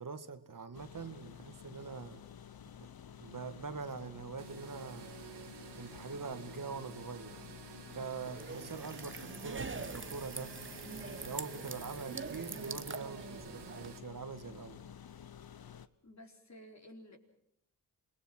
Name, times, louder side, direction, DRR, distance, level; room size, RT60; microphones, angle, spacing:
voice 1, 0.0-2.2 2.8-2.9 3.2-5.1 5.8-7.4 7.9-10.6 11.2-14.8, right 5 dB, 50° right, 2.0 m, -44 dB
sound 1, 0.7-15.9, left 8 dB, 65° left, 1.1 m, -51 dB
sound 2, 4.4-14.0, right 10 dB, 85° right, 1.0 m, -52 dB
sound 3, 8.3-13.9, right 4 dB, 30° right, 1.1 m, -44 dB
voice 2, 16.0-17.2, equal, 40° left, 4.3 m, -53 dB
27.5 x 20.5 x 6.2 m
cardioid pair, 50°, 40 cm